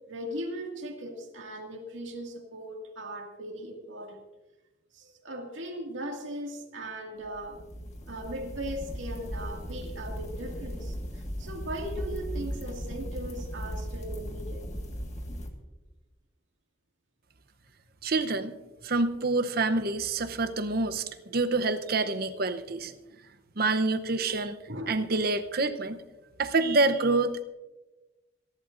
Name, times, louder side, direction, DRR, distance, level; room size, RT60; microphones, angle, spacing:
voice 1, 0.1-4.2 4.9-7.6 8.1-14.7 23.2-23.3 24.7-25.0, right 1 dB, 85° right, 2 dB, 2.2 m, -38 dB
sound 1, 7.2-15.5, equal, 40° left, 1.7 m, -37 dB
voice 2, 18.0-18.6 18.8-22.9 23.6-24.6 24.9-26.0 26.4-27.4, right 3 dB, 50° right, 9 dB, 0.8 m, -27 dB
27.5 x 11.5 x 2.6 m, 1.1 s
head